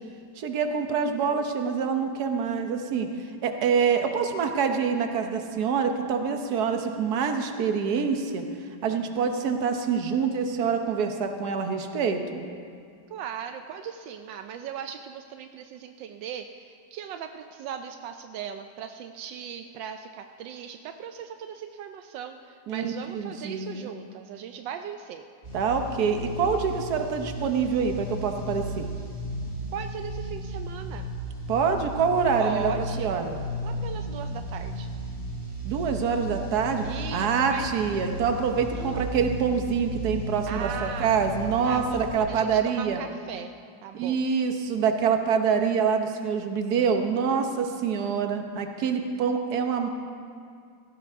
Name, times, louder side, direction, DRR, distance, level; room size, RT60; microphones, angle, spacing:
voice 1, 0.4-3.1 3.4-8.4 8.8-12.4 22.7-23.9 25.5-28.9 31.5-33.4 35.6-36.9 37.1-43.0 43.9-49.9, right 6 dB, 60° right, 5 dB, 1.5 m, -26 dB
voice 2, 13.1-25.2 29.7-31.1 32.4-33.2 33.6-34.9 36.8-37.7 38.7-39.1 40.5-41.1 41.6-43.5 43.8-44.2, right 8 dB, 80° right, 7 dB, 1.3 m, -38 dB
sound 1, 25.4-42.1, equal, 30° right, 3.6 m, -35 dB
17.5 x 15.5 x 3.6 m, 2.3 s
omnidirectional pair, 2.0 m